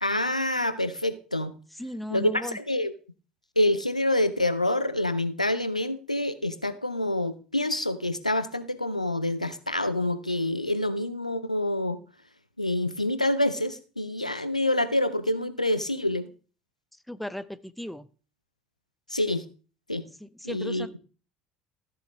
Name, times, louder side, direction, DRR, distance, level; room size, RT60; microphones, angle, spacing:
voice 1, 0.0-1.5 2.1-2.9 3.6-12.0 12.6-16.3 19.1-19.5 19.9-20.0 20.4-21.0, left 1 dB, 90° left, 13 dB, 0.6 m, -27 dB
voice 2, 1.8-2.6 17.1-18.1 20.2-21.0, equal, ahead, 16 dB, 0.5 m, -36 dB
13.5 x 7.7 x 3.1 m, 0.37 s
figure-of-eight pair, 60°, 4 cm